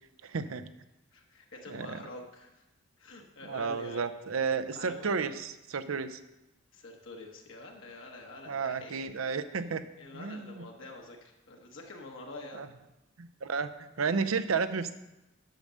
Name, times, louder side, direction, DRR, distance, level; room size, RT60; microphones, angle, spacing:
voice 1, 0.2-0.7 1.7-2.0 3.4-6.2 8.5-9.8 10.1-10.6 12.5-12.7 13.2-14.9, right 5 dB, 85° right, 12 dB, 0.6 m, -32 dB
voice 2, 1.1-2.6 3.0-4.1 4.7-5.1 6.7-9.4 10.0-12.6, left 2 dB, 65° left, 1 dB, 1.2 m, -47 dB
8.9 x 6.6 x 6.3 m, 0.98 s
head